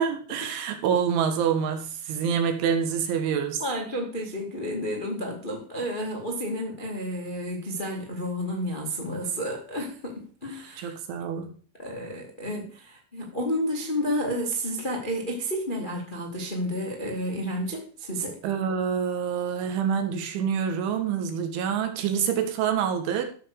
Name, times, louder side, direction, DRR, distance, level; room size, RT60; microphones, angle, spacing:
voice 1, 0.0-3.6 10.8-11.5 18.4-23.3, right 7 dB, 90° right, 5 dB, 4.2 m, -26 dB
voice 2, 3.6-10.9 11.8-18.4, equal, 35° left, 0 dB, 0.8 m, -31 dB
14.0 x 6.4 x 6.6 m, 0.43 s
omnidirectional pair, 5.3 m